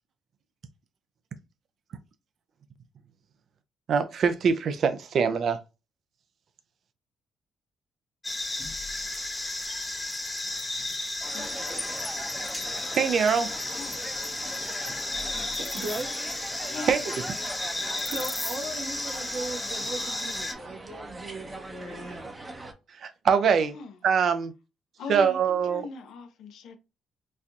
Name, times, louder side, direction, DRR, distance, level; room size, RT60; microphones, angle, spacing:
voice 1, 3.9-5.6 12.9-13.5 16.9-17.0 23.0-23.8 24.0-24.5 25.1-25.9, right 6 dB, 60° right, 0.5 m, -23 dB
sound 1, 8.2-20.5, left 2 dB, 20° left, 0.8 m, -33 dB
sound 2, 11.2-22.7, right 2 dB, 25° right, 0.8 m, -41 dB
voice 2, 11.7-12.2 15.2-16.2 17.6-17.7 18.0-22.3, right 2 dB, 90° right, 1.3 m, -38 dB
voice 3, 25.0-26.8, left 3 dB, 75° left, 0.6 m, -40 dB
4.2 x 2.2 x 2.5 m
supercardioid pair, 60°, 0 cm